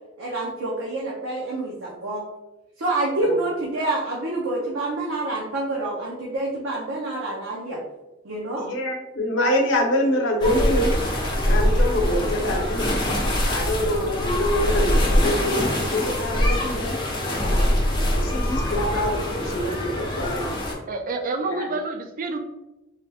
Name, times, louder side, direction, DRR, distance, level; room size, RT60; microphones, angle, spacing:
voice 1, 0.2-2.2 2.8-7.8 8.2-8.7, right 2 dB, 85° right, -4 dB, 0.6 m, -27 dB
voice 2, 8.6-11.0 11.5-12.9 13.5-17.0 18.2-20.5 21.4-21.8, left 1 dB, 65° left, 1 dB, 0.7 m, -25 dB
sound 1, 10.4-20.7, left 1 dB, 25° left, 0.8 m, -23 dB
voice 3, 20.9-22.4, right 3 dB, 45° right, 6 dB, 0.4 m, -28 dB
3.4 x 2.3 x 2.7 m, 1.0 s
head